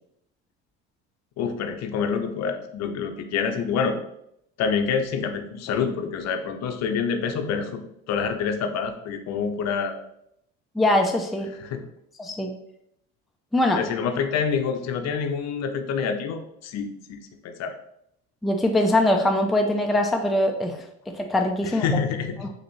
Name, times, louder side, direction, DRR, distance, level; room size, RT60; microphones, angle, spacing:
voice 1, 1.4-4.0 4.6-7.8 8.1-10.0 11.6-11.8 13.7-17.2 17.4-17.7 21.6-22.5, left 6 dB, 55° left, 6 dB, 0.6 m, -27 dB
voice 2, 10.8-11.5 12.2-12.5 13.5-13.8 18.4-21.9, left 1 dB, ahead, 3 dB, 0.4 m, -22 dB
4.1 x 2.8 x 3.0 m, 0.76 s
hypercardioid pair, 70°, 32 cm